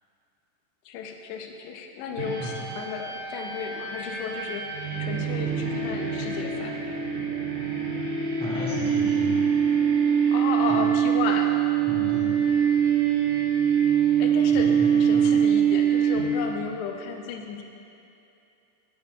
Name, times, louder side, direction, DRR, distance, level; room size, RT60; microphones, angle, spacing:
voice 1, 0.9-6.8 10.3-11.6 14.2-17.6, left 6 dB, 80° left, 3 dB, 2.5 m, -34 dB
sound 1, 2.2-16.7, right 8 dB, 60° right, 3.8 m, -24 dB
voice 2, 8.4-9.5 10.7-10.9 11.9-12.3 14.5-15.3, left 1 dB, 5° left, -9 dB, 1.1 m, -34 dB
18.5 x 9.6 x 2.4 m, 2.7 s
omnidirectional pair, 5.2 m